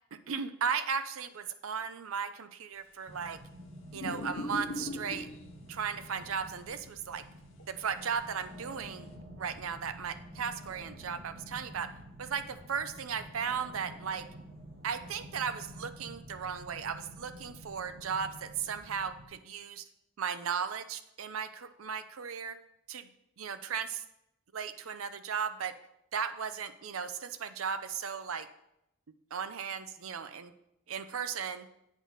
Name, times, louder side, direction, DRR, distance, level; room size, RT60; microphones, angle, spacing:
voice 1, 0.3-3.4 3.9-5.3 5.7-7.2 7.7-9.1 9.4-11.9 12.2-14.3 14.8-19.9 20.2-22.6 22.9-23.1 23.4-24.0 24.5-25.8 26.1-28.5 29.3-30.5 30.9-31.7, right 6 dB, 90° right, 11 dB, 0.6 m, -36 dB
sound 1, 3.1-19.3, equal, 70° right, 1.8 m, -50 dB
sound 2, 3.9-5.5 7.6-7.7, left 1 dB, 65° left, 0.8 m, -38 dB
8.2 x 4.0 x 6.5 m, 0.81 s
head